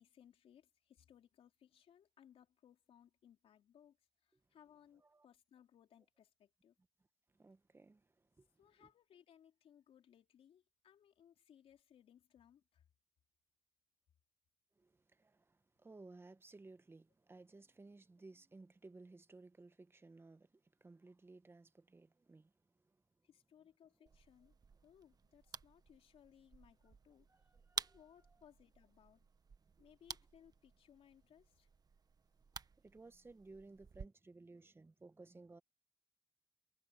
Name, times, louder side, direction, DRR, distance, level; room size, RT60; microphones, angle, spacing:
voice 1, 0.0-6.8 8.6-12.9 23.2-24.6 24.8-29.3 29.8-31.7, left 9 dB, 70° left, 3.5 m, -66 dB
voice 2, 7.3-8.5 8.8-8.9 14.8-22.5 22.8-23.0 24.0-24.1 27.3-28.0 29.8-29.9 32.8-35.6, right 3 dB, 25° right, 1.4 m, -59 dB
sound 1, 24.1-34.1, right 5 dB, 40° right, 1.4 m, -52 dB
cardioid pair, 80°, 10 cm